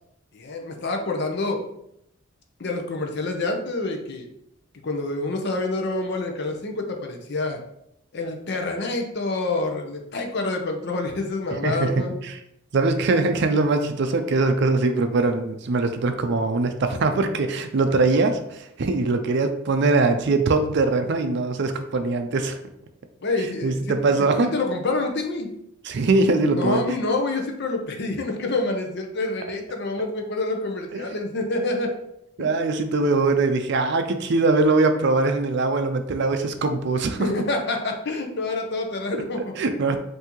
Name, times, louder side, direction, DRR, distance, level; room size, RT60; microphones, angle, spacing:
voice 1, 0.3-1.6 2.6-4.3 4.8-7.6 8.1-12.1 23.2-23.9 24.4-25.5 26.6-31.9 37.2-39.5, left 2 dB, 55° left, 3 dB, 0.7 m, -27 dB
voice 2, 11.6-12.4 12.7-22.6 23.6-24.5 25.8-26.8 30.9-31.0 32.4-37.3 39.1-39.2 39.6-40.0, right 3 dB, 55° right, 7 dB, 0.4 m, -22 dB
5.7 x 2.7 x 3.0 m, 0.76 s
head